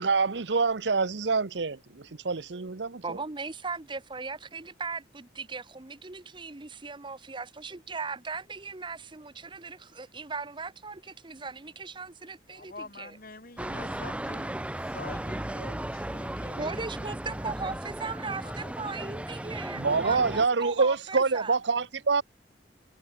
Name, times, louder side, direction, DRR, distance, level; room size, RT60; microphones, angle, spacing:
voice 1, 0.0-3.2 19.7-22.2, right 4 dB, 75° right, 0.9 m, -26 dB
voice 2, 3.0-13.2 16.6-21.6, right 4 dB, 25° right, 0.9 m, -38 dB
voice 3, 12.5-17.1 18.4-19.2, left 2 dB, 50° left, 6.5 m, -47 dB
sound 1, 13.6-20.5, right 1 dB, 5° right, 0.5 m, -36 dB
head